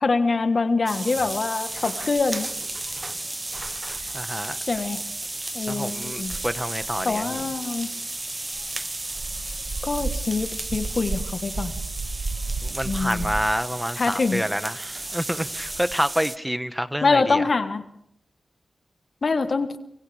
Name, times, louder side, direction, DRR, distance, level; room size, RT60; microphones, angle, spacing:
voice 1, 0.0-2.5 4.7-5.0 5.5-6.4 7.0-7.9 9.8-11.8 12.8-13.3 14.0-14.4 17.0-17.8 19.2-19.8, left 4 dB, 60° left, 9 dB, 1.5 m, -24 dB
sound 1, 0.9-16.4, right 2 dB, 30° right, 0.9 m, -34 dB
sound 2, 1.7-15.9, right 3 dB, 60° right, 1.9 m, -37 dB
voice 2, 4.1-4.6 5.7-7.4 12.6-17.4, equal, 5° right, 10 dB, 1.5 m, -28 dB
28.5 x 26.0 x 3.6 m, 0.72 s
cardioid pair, 50°, 0 cm